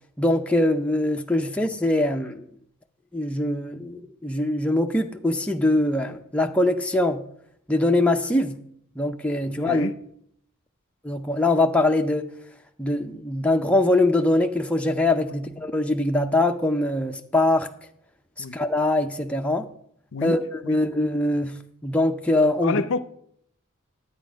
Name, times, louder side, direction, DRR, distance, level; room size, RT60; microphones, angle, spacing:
voice 1, 0.2-2.4 3.1-7.2 7.7-8.6 9.0-9.9 11.0-12.3 12.8-17.7 18.5-19.7 20.2-22.8, left 1 dB, 5° left, 0.5 m, -23 dB
voice 2, 9.5-9.9 18.4-18.6 20.1-20.3 20.6-20.8 22.6-23.0, left 4 dB, 65° left, 0.5 m, -28 dB
10.5 x 8.6 x 5.1 m
head